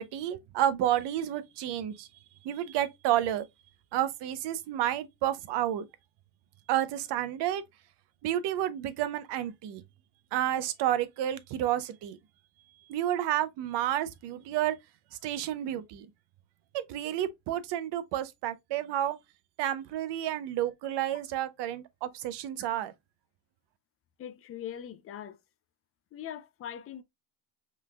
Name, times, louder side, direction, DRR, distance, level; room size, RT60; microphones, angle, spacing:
voice 1, 0.0-2.1 2.4-3.5 3.9-5.9 6.7-7.6 8.2-9.8 10.3-12.2 12.9-14.8 15.2-16.1 16.7-19.2 19.6-22.9, right 12 dB, 55° right, 0.8 m, -30 dB
voice 2, 24.2-25.4 26.1-27.0, left 9 dB, 30° left, 0.4 m, -41 dB
5.5 x 3.3 x 2.2 m
cardioid pair, 130°, 49 cm